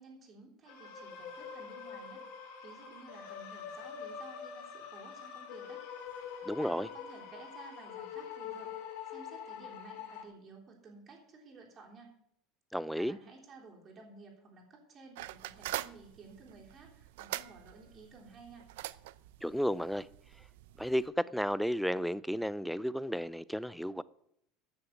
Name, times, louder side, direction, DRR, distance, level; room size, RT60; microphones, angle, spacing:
voice 1, 0.0-2.2 2.6-5.8 6.3-12.1 13.0-18.6, right 4 dB, 25° right, 3.4 m, -54 dB
sound 1, 0.7-10.2, left 7 dB, 60° left, 2.6 m, -45 dB
voice 2, 6.5-6.9 12.7-13.2 19.4-20.1 20.8-24.0, equal, ahead, 0.4 m, -33 dB
sound 2, 15.1-21.1, right 16 dB, 85° right, 0.5 m, -44 dB
14.0 x 6.5 x 7.2 m
cardioid pair, 160°, 0 cm